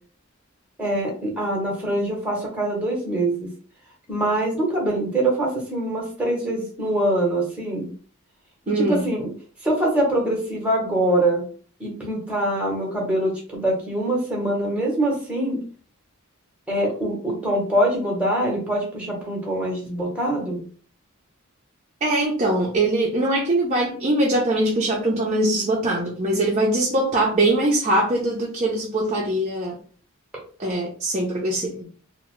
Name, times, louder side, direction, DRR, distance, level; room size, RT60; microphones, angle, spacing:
voice 1, 0.8-3.5 4.1-7.9 8.7-9.2 9.6-11.4 11.8-15.6 16.7-20.6, right 1 dB, 5° right, -2 dB, 0.9 m, -24 dB
voice 2, 8.7-9.1 22.0-29.8 30.6-31.8, right 1 dB, 30° right, -2 dB, 0.5 m, -22 dB
2.7 x 2.1 x 3.0 m, 0.42 s
head